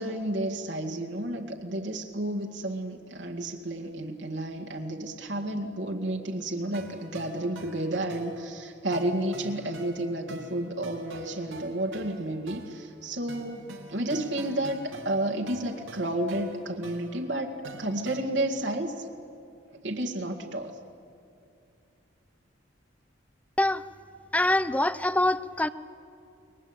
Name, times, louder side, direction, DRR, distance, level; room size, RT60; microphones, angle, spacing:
voice 1, 0.0-19.1 19.7-20.8, right 1 dB, 65° right, 2 dB, 2.1 m, -31 dB
sound 1, 6.7-18.2, right 1 dB, 90° right, 3.0 m, -47 dB
voice 2, 24.3-25.7, left 1 dB, 5° left, 15 dB, 0.7 m, -24 dB
29.5 x 22.5 x 8.9 m, 2.7 s
head